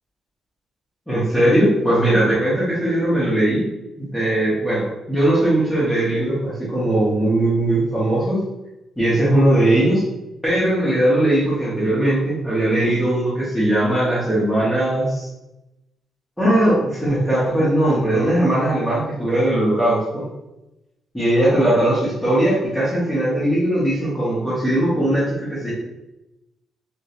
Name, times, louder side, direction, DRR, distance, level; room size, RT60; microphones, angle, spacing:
voice 1, 1.1-3.7 4.0-8.4 9.0-10.0 10.4-15.3 16.4-20.3 21.1-25.7, right 1 dB, 5° left, -10 dB, 0.8 m, -19 dB
3.1 x 2.8 x 2.8 m, 0.94 s
cardioid pair, 180°, 0 cm